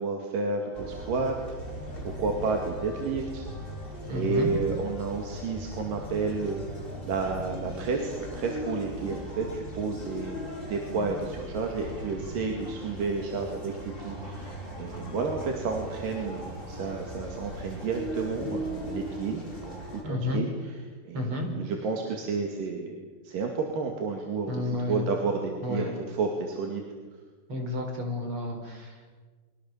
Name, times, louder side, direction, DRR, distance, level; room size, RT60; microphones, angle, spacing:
voice 1, 0.0-3.5 3.8-10.4 10.7-20.8 21.0-23.0 23.2-26.8, right 4 dB, 65° right, 2 dB, 3.8 m, -31 dB
sound 1, 0.7-20.0, equal, 15° left, 5.3 m, -38 dB
voice 2, 4.1-4.5 20.0-20.4 21.1-21.5 24.5-25.1 25.6-25.9 27.5-29.3, left 2 dB, 35° right, 3 dB, 5.6 m, -31 dB
29.5 x 24.0 x 7.3 m, 1.4 s
omnidirectional pair, 4.2 m